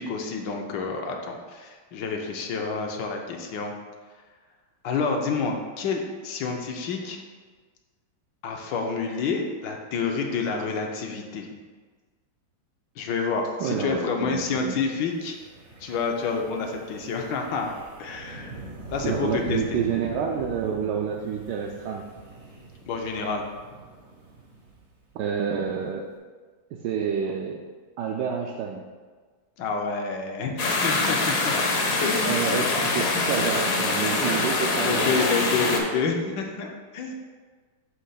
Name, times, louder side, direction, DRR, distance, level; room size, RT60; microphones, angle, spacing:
voice 1, 0.0-3.7 4.8-7.2 8.4-11.5 13.0-15.4 15.8-17.7 18.0-18.6 18.9-19.8 22.9-23.4 29.6-30.6 30.8-31.5 32.0-32.4 34.8-37.1, left 4 dB, 75° left, 2 dB, 1.3 m, -28 dB
voice 2, 13.6-14.8 19.0-22.0 25.1-26.1 26.8-27.6 28.0-28.8 32.2-35.5, right 7 dB, 70° right, 0 dB, 1.1 m, -29 dB
Wind, 15.1-25.4, right 3 dB, 50° right, 0.9 m, -43 dB
sound 1, 30.6-35.8, left 3 dB, 55° left, 1.1 m, -24 dB
6.5 x 3.1 x 5.6 m, 1.5 s
omnidirectional pair, 2.1 m